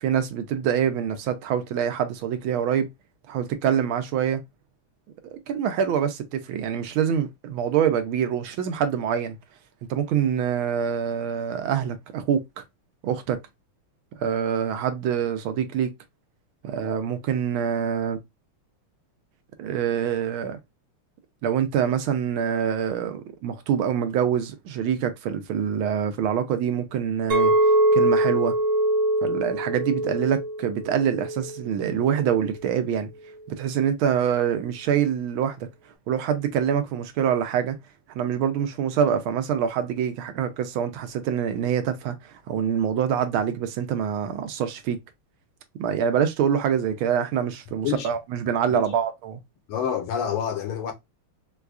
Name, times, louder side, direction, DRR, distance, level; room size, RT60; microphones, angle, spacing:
voice 1, 0.0-2.9 3.3-4.4 5.3-9.4 9.9-12.6 13.0-13.4 14.1-15.9 16.6-18.2 19.6-20.6 21.4-27.5 27.9-28.5 29.2-33.1 33.5-35.7 36.1-37.7 38.1-45.0 45.8-49.4, right 8 dB, 75° right, 1.4 m, -25 dB
Chink clink, 27.3-31.6 32.1-32.5, right 1 dB, 50° right, 0.9 m, -23 dB
voice 2, 49.7-50.9, left 8 dB, 80° left, 1.8 m, -27 dB
4.7 x 2.3 x 2.3 m
omnidirectional pair, 2.4 m